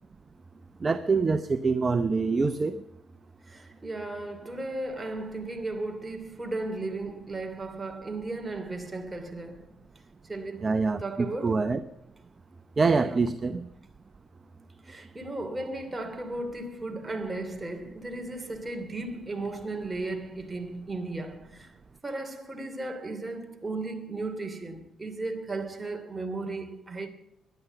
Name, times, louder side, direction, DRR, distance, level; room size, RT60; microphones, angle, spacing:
voice 1, 0.8-2.8 10.6-11.0 11.4-11.8 12.8-13.6, right 4 dB, 35° right, 0.8 m, -25 dB
voice 2, 3.5-9.7 10.3-10.7 11.0-11.7 13.0-13.3 14.8-21.7 22.0-27.1, right 2 dB, 20° right, 2.9 m, -35 dB
17.5 x 11.5 x 6.9 m
cardioid pair, 90°, 0 cm